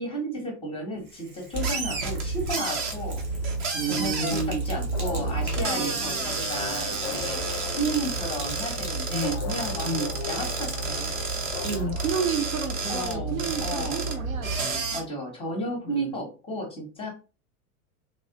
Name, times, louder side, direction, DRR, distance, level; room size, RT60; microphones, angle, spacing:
voice 1, 0.0-3.2 3.9-7.4 7.8-9.9 10.3-11.1 12.9-14.1 14.9-17.1, right 1 dB, 10° left, 2 dB, 0.7 m, -33 dB
Sink (filling or washing), 1.0-11.9, right 2 dB, 80° right, 1.1 m, -43 dB
sound 1, 1.5-15.0, right 3 dB, 25° right, 0.5 m, -30 dB
voice 2, 3.7-4.6 5.7-6.0 9.1-9.4 9.8-10.1 11.6-14.9 15.8-16.1, right 4 dB, 65° right, 6 dB, 0.7 m, -30 dB
sound 2, 4.9-14.4, left 8 dB, 50° left, 0.4 m, -39 dB
3.1 x 2.3 x 2.7 m, 0.35 s
figure-of-eight pair, 90°, 45 cm